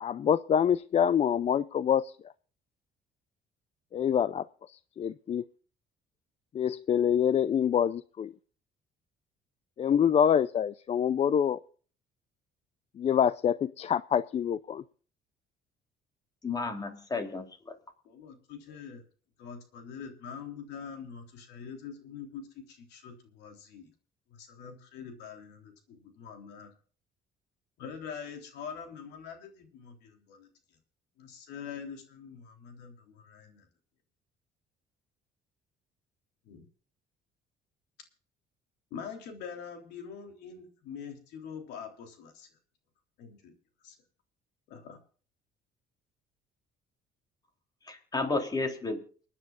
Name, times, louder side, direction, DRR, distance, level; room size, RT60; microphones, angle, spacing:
voice 1, 0.0-2.1 3.9-4.5 5.0-5.4 6.5-8.3 9.8-11.6 13.0-14.8, left 8 dB, 40° left, 16 dB, 0.5 m, -26 dB
voice 2, 16.4-17.7 47.9-49.0, left 3 dB, 25° left, 4 dB, 3.5 m, -32 dB
voice 3, 18.0-19.0 19.4-23.9 24.3-26.7 27.8-30.5 31.2-33.7 36.4-36.6 38.9-42.5 43.2-43.5 43.8-44.0 44.7-45.0, left 6 dB, 85° left, 4 dB, 3.6 m, -44 dB
30.0 x 10.0 x 2.5 m, 0.42 s
cardioid pair, 110°, 17 cm